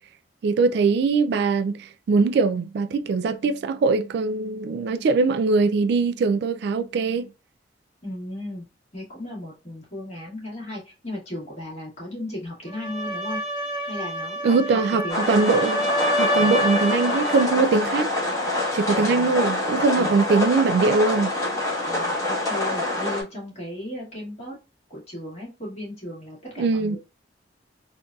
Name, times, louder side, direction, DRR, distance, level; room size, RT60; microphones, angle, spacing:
voice 1, 0.4-7.3 14.4-15.9 16.2-18.1 18.7-21.3 26.6-27.0, right 4 dB, 60° right, 0.3 m, -22 dB
voice 2, 8.0-8.6 8.9-13.4 13.8-15.5 16.4-16.6 18.9-19.4 19.9-20.2 21.9-24.5 24.9-27.0, left 1 dB, 35° left, 1.8 m, -36 dB
sound 1, 12.7-17.6, equal, 30° right, 1.1 m, -27 dB
sound 2, 15.1-23.2, left 2 dB, 20° left, 1.2 m, -26 dB
3.8 x 2.6 x 2.3 m
head